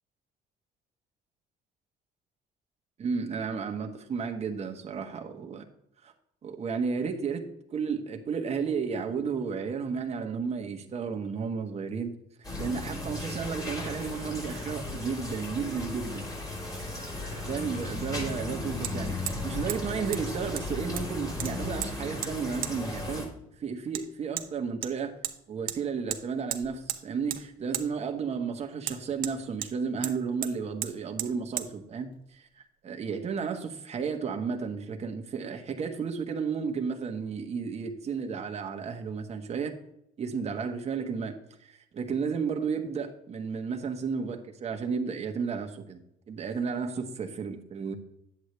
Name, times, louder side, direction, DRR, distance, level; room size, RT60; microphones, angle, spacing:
voice 1, 3.0-5.6 6.0-6.1 6.4-12.2 12.6-16.3 17.2-19.2 19.4-25.2 25.5-39.8 40.2-46.0 46.3-47.9, right 5 dB, 40° right, 1.2 m, -33 dB
sound 1, 12.4-23.3, left 2 dB, 20° left, 3.7 m, -35 dB
Hammer, 18.8-18.9 19.3-19.4 19.7-19.8 20.1-20.2 20.6-21.1 21.4-21.9 22.2-22.3 22.6-22.7 23.9-24.0 24.4-24.5 24.8-25.4 25.7-25.8 26.1-26.2 26.5-27.0 27.3-27.4 27.7-27.9 28.8-29.7 30.0-30.2 30.4-30.5 30.8-30.9 31.2-31.3 31.6-31.7, right 11 dB, 55° right, 0.8 m, -34 dB
10.0 x 8.1 x 3.2 m
cardioid pair, 110°, 17 cm